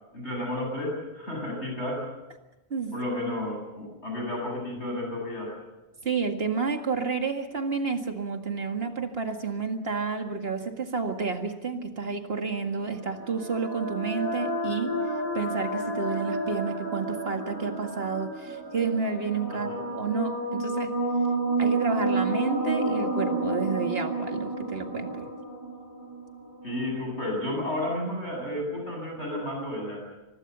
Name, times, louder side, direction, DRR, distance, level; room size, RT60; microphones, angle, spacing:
voice 1, 0.1-2.1 2.9-5.5 19.5-19.8 26.6-30.0, left 1 dB, 90° left, 1 dB, 8.3 m, -32 dB
voice 2, 6.0-15.0 15.3-20.9 21.6-25.3, right 5 dB, 65° right, 5 dB, 2.2 m, -30 dB
sound 1, 12.6-26.7, right 2 dB, 20° right, 6.0 m, -30 dB
24.0 x 21.0 x 6.8 m, 1.1 s
omnidirectional pair, 1.1 m